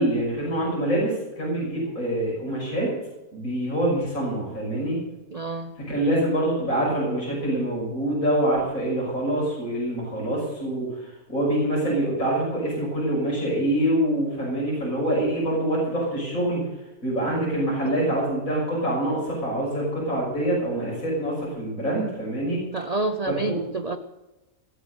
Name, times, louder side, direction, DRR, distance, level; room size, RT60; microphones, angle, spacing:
voice 1, 0.0-2.9 3.3-5.0 5.8-16.6 17.0-22.7 23.3-23.6, right 1 dB, 55° left, -5 dB, 6.8 m, -25 dB
voice 2, 5.3-5.7 22.7-24.0, right 3 dB, 60° right, 8 dB, 0.4 m, -28 dB
17.5 x 7.3 x 8.0 m, 1.0 s
omnidirectional pair, 1.7 m